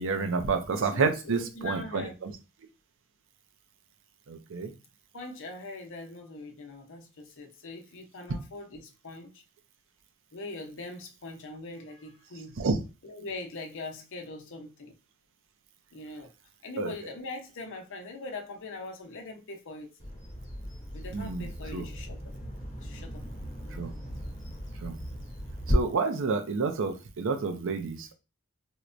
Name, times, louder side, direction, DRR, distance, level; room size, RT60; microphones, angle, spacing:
voice 1, 0.0-2.3 4.3-4.7 12.6-12.8 16.8-16.9 21.1-21.5 21.7-21.9 23.8-23.9 24.8-25.0 25.7-28.1, right 4 dB, 65° right, 0.5 m, -29 dB
voice 2, 0.7-2.2 5.1-9.4 10.3-12.6 13.0-14.9 15.9-16.3 16.6-19.9 20.9-22.3 22.8-23.2, left 3 dB, 60° left, 0.7 m, -42 dB
Bird vocalization bird call bird song, 20.0-25.7, equal, 35° left, 0.9 m, -38 dB
4.4 x 2.1 x 2.5 m
head